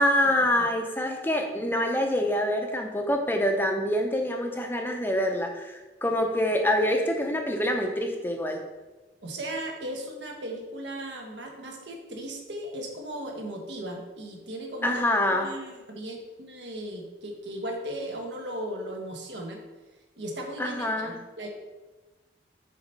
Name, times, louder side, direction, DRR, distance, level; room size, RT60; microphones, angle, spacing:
voice 1, 0.0-8.6 14.8-15.5 20.6-21.2, left 1 dB, 10° left, 3 dB, 0.6 m, -26 dB
voice 2, 9.2-15.0 15.3-19.6 20.2-21.5, right 1 dB, 75° right, 1 dB, 1.2 m, -37 dB
5.0 x 4.2 x 5.3 m, 1.2 s
head